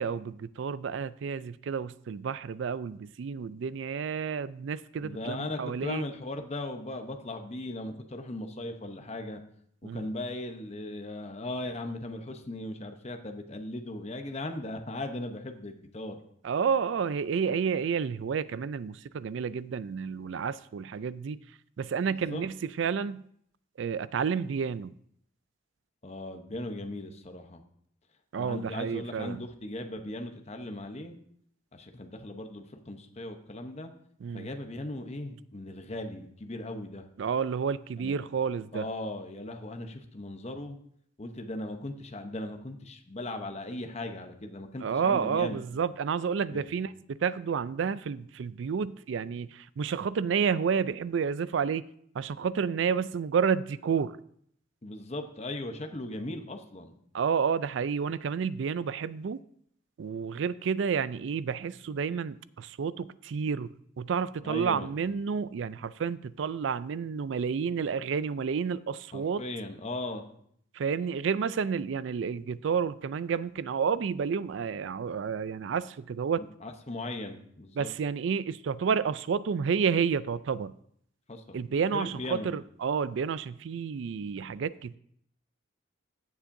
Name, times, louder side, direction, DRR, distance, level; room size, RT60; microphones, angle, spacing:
voice 1, 0.0-6.0 9.8-10.1 16.4-21.4 21.8-23.2 23.8-24.9 28.3-29.4 34.2-34.5 37.2-38.8 44.8-51.8 52.1-54.2 57.1-59.4 60.0-69.4 70.7-76.4 77.8-80.7 81.5-85.0, right 6 dB, 70° right, 0.4 m, -30 dB
voice 2, 5.0-9.4 9.9-16.2 22.1-22.4 26.0-27.6 28.4-31.1 31.7-33.9 34.3-37.1 38.0-38.2 38.7-40.8 41.2-45.6 46.5-46.7 54.8-56.9 64.4-64.9 69.1-70.2 76.4-77.9 81.3-81.6 81.9-82.5, left 1 dB, 35° left, 0.8 m, -38 dB
15.5 x 7.3 x 2.6 m
head